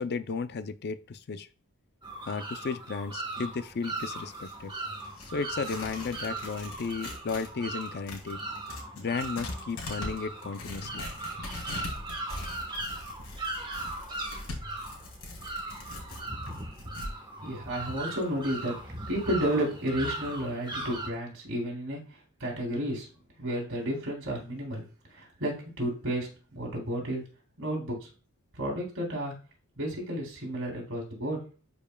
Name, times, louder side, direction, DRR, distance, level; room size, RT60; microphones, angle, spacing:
voice 1, 0.0-1.5 2.3-4.7 5.3-8.4 9.0-11.1, left 4 dB, 50° left, 12 dB, 0.4 m, -34 dB
sound 1, 2.0-21.1, right 2 dB, 20° right, 1.2 m, -39 dB
Tearing, 3.8-7.5 7.8-17.1, left 2 dB, 85° left, 2.6 m, -42 dB
voice 2, 17.4-22.0 22.4-23.1 23.4-24.8 25.1-27.2 27.6-28.1 28.5-29.3 29.8-31.4, equal, 60° right, -1 dB, 3.4 m, -32 dB
11.5 x 5.2 x 2.3 m, 0.36 s
head